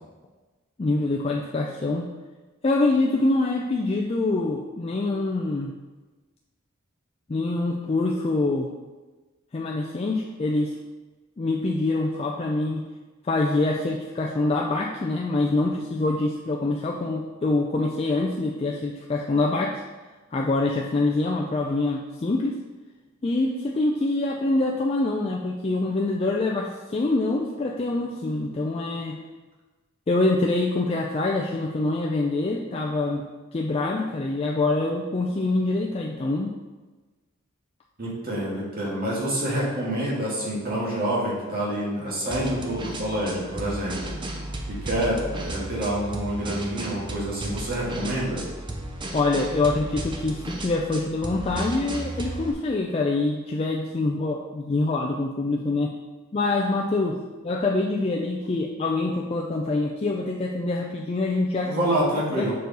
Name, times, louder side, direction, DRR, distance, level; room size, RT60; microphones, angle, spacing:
voice 1, 0.8-2.1 2.6-5.7 7.3-8.7 9.5-10.8 11.4-12.9 13.2-19.8 20.3-22.6 23.2-29.2 30.1-33.2 33.5-36.5 49.1-55.9 56.3-61.8 62.4-62.5, left 2 dB, 25° left, -1 dB, 0.3 m, -25 dB
voice 2, 38.0-44.1 44.7-48.4 61.6-62.5, right 1 dB, 40° right, -5 dB, 1.9 m, -27 dB
sound 1, 42.3-52.5, right 1 dB, 20° right, 0.5 m, -34 dB
6.2 x 4.6 x 4.0 m, 1.2 s
head